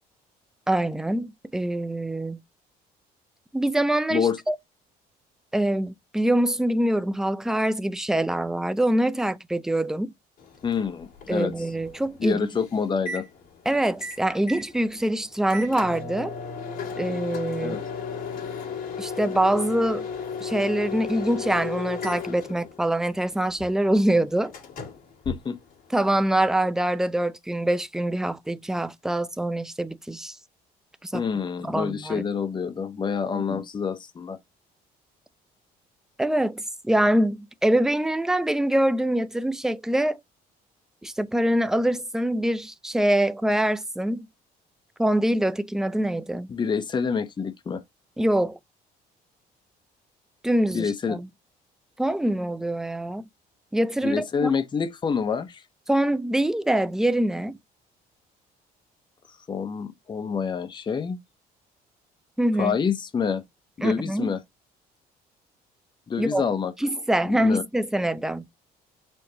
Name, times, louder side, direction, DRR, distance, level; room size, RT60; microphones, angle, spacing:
voice 1, 0.7-2.4 3.5-4.6 5.5-10.1 11.3-12.5 13.7-16.3 17.0-17.8 19.0-20.1 20.4-24.5 25.9-30.4 31.0-31.2 31.6-32.2 33.5-33.6 36.2-40.2 41.0-44.3 45.0-46.5 48.2-48.6 50.4-51.3 52.0-53.2 53.7-54.5 55.9-57.6 62.4-62.8 63.8-64.3 66.2-66.4 66.8-68.5, right 1 dB, 5° right, 0.4 m, -24 dB
Microwave oven, 10.4-26.1, left 5 dB, 55° left, 2.2 m, -36 dB
voice 2, 10.6-11.5 12.2-13.3 17.6-17.8 25.3-25.6 31.1-34.4 46.5-47.8 50.7-51.2 54.0-55.6 59.5-61.2 62.6-63.4 63.8-64.4 66.1-66.7 67.3-67.6, left 6 dB, 25° left, 0.8 m, -27 dB
4.5 x 2.9 x 2.7 m
cardioid pair, 110°, 17 cm